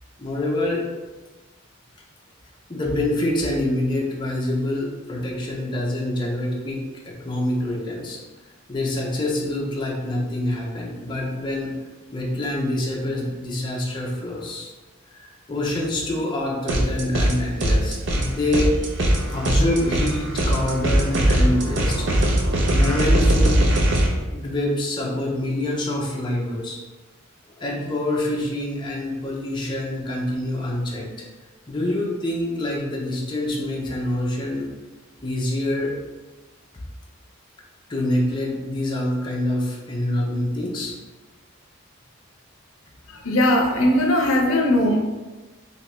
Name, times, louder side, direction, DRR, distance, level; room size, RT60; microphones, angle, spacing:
voice 1, 0.2-0.8 2.7-8.2 8.7-11.7 12.1-14.7 15.1-18.8 19.3-22.1 22.7-23.6 24.3-26.8 27.6-31.3 31.7-34.7 35.2-36.0 37.9-40.9, left 1 dB, 20° left, -3 dB, 0.5 m, -26 dB
sound 1, 16.7-17.3 17.6-24.1, right 1 dB, 60° right, 0.6 m, -20 dB
voice 2, 43.1-45.0, left 1 dB, 75° left, 1 dB, 0.5 m, -19 dB
3.3 x 2.7 x 3.0 m, 1.2 s
head